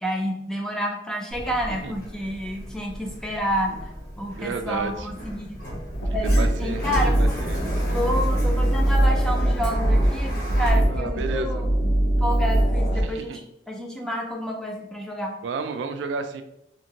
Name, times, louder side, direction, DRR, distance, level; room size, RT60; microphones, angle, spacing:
voice 1, 0.0-3.7 4.2-5.6 6.1-7.4 7.9-11.7 12.2-15.4, equal, 5° left, 0 dB, 0.4 m, -29 dB
Sliding door, 1.3-10.7, equal, 55° left, 1.0 m, -35 dB
voice 2, 4.3-5.1 6.4-6.8 7.2-7.8 10.9-11.6 13.0-13.4 15.4-16.4, right 4 dB, 85° right, 8 dB, 0.3 m, -31 dB
sound 1, 5.9-13.0, right 1 dB, 80° left, 0.6 m, -22 dB
2.8 x 2.6 x 2.8 m, 0.80 s
head